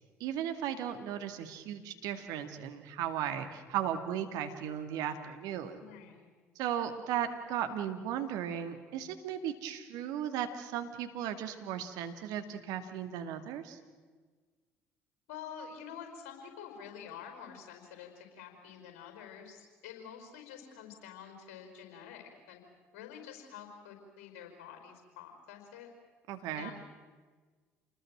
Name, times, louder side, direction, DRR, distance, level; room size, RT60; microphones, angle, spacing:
voice 1, 0.2-5.8 6.6-13.8 26.3-26.7, right 9 dB, 65° right, 7 dB, 2.1 m, -36 dB
voice 2, 5.7-6.3 15.3-22.6 22.9-25.9 26.5-26.7, left 8 dB, 70° left, 5 dB, 5.0 m, -48 dB
28.5 x 20.0 x 7.6 m, 1.4 s
hypercardioid pair, 55°, 7 cm